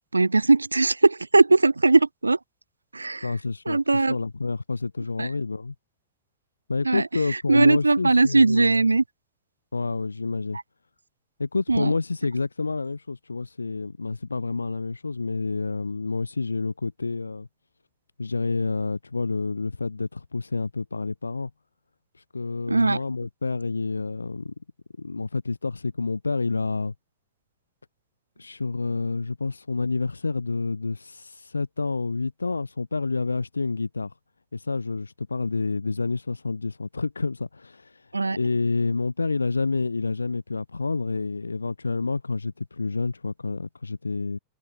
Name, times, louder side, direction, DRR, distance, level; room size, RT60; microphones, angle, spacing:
voice 1, 0.1-2.4 2.9-3.3 3.7-4.2 5.2-5.3 6.8-7.0 7.5-9.0 11.7-11.9 22.7-23.0 38.1-38.4, right 3 dB, 80° right, 0.7 m, -19 dB
voice 2, 3.2-5.7 6.7-8.8 9.7-10.6 11.4-17.5 18.2-21.5 22.1-24.5 25.0-26.9 28.4-34.1 34.5-44.4, left 3 dB, 80° left, 0.7 m, -28 dB
figure-of-eight pair, 90°, 0 cm